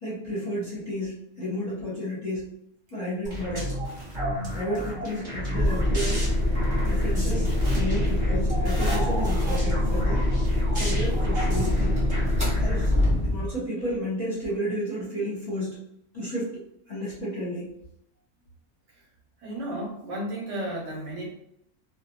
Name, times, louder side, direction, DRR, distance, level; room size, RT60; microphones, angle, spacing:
voice 1, 0.0-2.5 2.9-3.8 4.5-6.3 6.8-7.5 7.7-10.2 10.8-12.0 12.6-12.9 13.3-15.8 16.1-16.6 16.9-17.7, equal, 35° left, -8 dB, 0.8 m, -32 dB
sound 1, 3.2-12.9, equal, 30° right, 0.9 m, -31 dB
sound 2, 5.5-13.6, left 1 dB, 5° right, 0.6 m, -24 dB
voice 2, 19.4-21.3, right 1 dB, 60° right, -3 dB, 1.0 m, -33 dB
2.5 x 2.2 x 2.8 m, 0.73 s
omnidirectional pair, 1.5 m